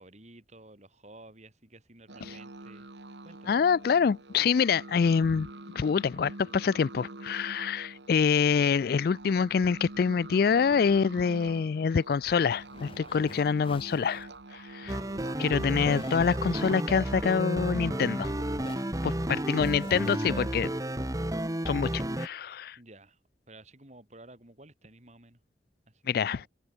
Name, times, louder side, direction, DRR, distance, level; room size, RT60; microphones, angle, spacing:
voice 1, 0.0-2.9 3.2-3.7 14.8-15.3 19.3-19.9 22.8-23.2 23.5-25.4 25.9-26.5, right 2 dB, 40° right, 5.5 m, -53 dB
sound 1, 2.1-18.9, right 2 dB, 85° right, 2.4 m, -46 dB
voice 2, 3.5-5.5 5.7-15.0 15.4-18.3 19.0-20.7 21.7-22.8 26.1-26.4, left 6 dB, 60° left, 0.3 m, -26 dB
sound 2, 9.2-18.3 18.6-20.2, left 2 dB, 30° left, 2.4 m, -51 dB
sound 3, 14.9-22.3, right 1 dB, 20° right, 1.8 m, -32 dB
head